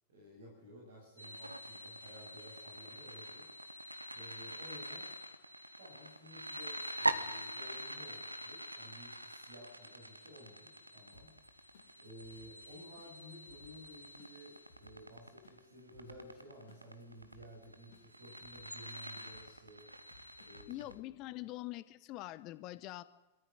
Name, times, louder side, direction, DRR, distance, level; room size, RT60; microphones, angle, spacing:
voice 1, 0.1-3.5 3.8-5.1 5.7-11.7 12.0-19.9 20.4-20.9, equal, 60° right, -2 dB, 7.2 m, -55 dB
sound 1, 1.2-20.9, right 1 dB, 85° right, 1.1 m, -44 dB
sound 2, 11.1-21.0, left 2 dB, 60° left, 3.0 m, -64 dB
voice 2, 20.7-23.0, left 17 dB, 40° left, 15 dB, 1.0 m, -44 dB
25.5 x 14.0 x 9.0 m, 1.1 s
figure-of-eight pair, 90°, 0 cm